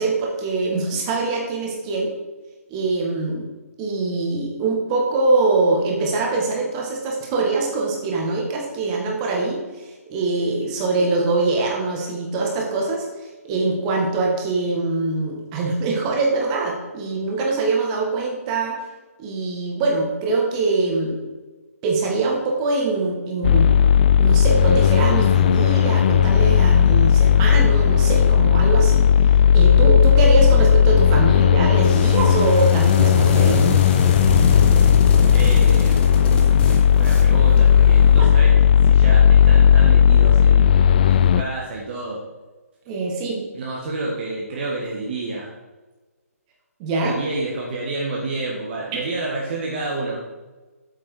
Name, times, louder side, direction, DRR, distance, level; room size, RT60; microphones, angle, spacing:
voice 1, 0.0-2.1 2.7-3.5 3.8-18.8 19.2-21.2 21.8-23.7 24.2-29.0 29.5-33.7 38.2-38.3 42.9-43.4 46.8-47.2 48.9-49.0, right 3 dB, 25° right, -1 dB, 1.9 m, -23 dB
sound 1, 23.4-41.4, left 8 dB, 35° left, 0.3 m, -15 dB
sound 2, 31.7-38.2, left 2 dB, 15° left, 1.0 m, -26 dB
voice 2, 35.3-36.0 36.3-42.2 43.5-45.5 47.0-50.2, right 2 dB, 40° right, -2 dB, 1.5 m, -29 dB
8.4 x 5.9 x 4.8 m, 1.2 s
figure-of-eight pair, 140°, 8 cm